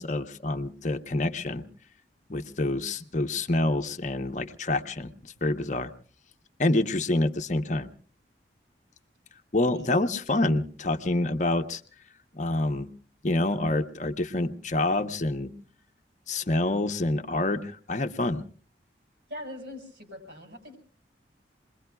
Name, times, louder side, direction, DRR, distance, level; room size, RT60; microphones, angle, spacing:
voice 1, 0.0-1.6 2.3-5.9 6.6-7.9 9.5-11.8 12.3-12.9 13.2-15.5 16.3-18.4, left 2 dB, 40° left, 7 dB, 0.8 m, -27 dB
voice 2, 19.3-20.8, left 1 dB, 70° right, 2 dB, 6.1 m, -42 dB
28.0 x 22.0 x 2.3 m, 0.42 s
head